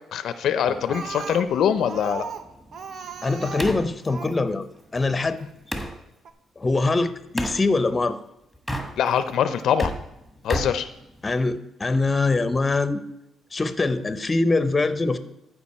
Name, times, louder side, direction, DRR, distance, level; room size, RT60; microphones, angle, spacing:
voice 1, 0.1-2.3 9.0-9.9 10.4-10.9, left 8 dB, 75° left, 12 dB, 0.5 m, -23 dB
sound 1, 0.7-6.0 7.4-7.6 8.5-9.3 9.6-11.6, equal, 5° right, 1.4 m, -34 dB
Speech, 0.9-4.4 5.4-5.5 5.9-6.0 6.2-6.3, right 6 dB, 60° right, 0.7 m, -37 dB
voice 2, 3.2-5.5 6.6-8.2 11.2-13.0 13.5-15.2, left 3 dB, 25° left, 13 dB, 0.7 m, -23 dB
13.5 x 5.0 x 4.2 m, 0.89 s
cardioid pair, 90°, 0 cm